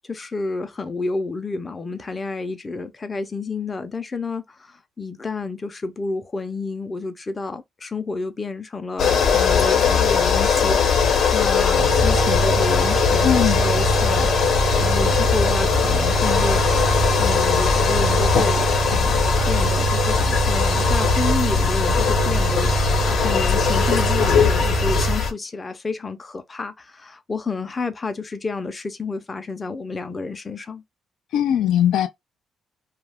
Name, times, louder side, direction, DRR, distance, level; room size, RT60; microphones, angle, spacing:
voice 1, 0.1-16.9 17.2-22.8 23.1-30.8, left 3 dB, 30° left, 0.5 m, -30 dB
sound 1, 9.0-25.3, left 6 dB, 65° left, 0.8 m, -20 dB
sound 2, 11.8-25.2, right 7 dB, 60° right, 0.3 m, -25 dB
voice 2, 13.2-13.6 31.3-32.1, left 10 dB, 80° left, 0.3 m, -19 dB
2.3 x 2.3 x 3.3 m
cardioid pair, 90°, 0 cm